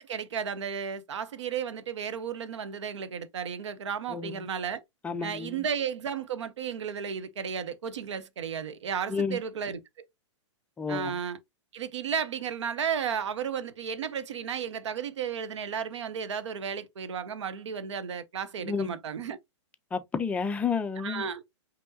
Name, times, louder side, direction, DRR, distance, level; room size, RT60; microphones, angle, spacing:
voice 1, 0.0-4.8 5.2-10.1 10.9-11.4 11.7-19.4 21.0-21.4, right 7 dB, 65° right, 0.7 m, -33 dB
voice 2, 4.1-4.4 5.0-5.6 9.1-9.4 10.8-11.1 18.6-18.9 19.9-21.3, left 5 dB, 10° left, 0.3 m, -31 dB
5.2 x 2.8 x 2.7 m
figure-of-eight pair, 110°, 16 cm